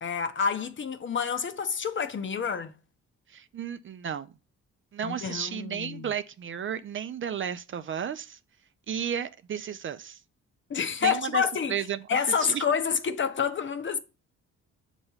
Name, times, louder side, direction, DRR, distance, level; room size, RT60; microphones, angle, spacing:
voice 1, 0.0-2.7 5.0-6.1 10.7-14.0, left 6 dB, 40° left, 0.8 m, -28 dB
voice 2, 3.3-4.3 4.9-8.4 8.9-10.2 11.0-11.4 11.7-12.0 12.4-12.6, right 8 dB, 40° right, 0.5 m, -33 dB
6.5 x 3.1 x 5.5 m
cardioid pair, 90°, 30 cm